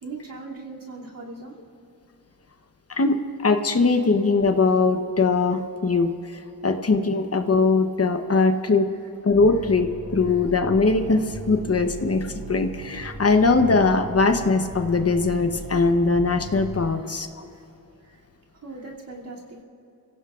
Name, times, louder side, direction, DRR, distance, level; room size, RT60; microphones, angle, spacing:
voice 1, 0.0-1.5 10.2-10.3 17.4-17.6 18.0-18.2 18.5-19.6, right 3 dB, 65° right, -3 dB, 2.7 m, -39 dB
voice 2, 2.9-8.9 9.2-17.3, left 3 dB, 40° left, 7 dB, 0.9 m, -21 dB
sound 1, 9.3-16.8, right 2 dB, 85° right, 4.5 m, -38 dB
30.0 x 16.5 x 2.5 m, 2.8 s
wide cardioid pair, 100°, 36 cm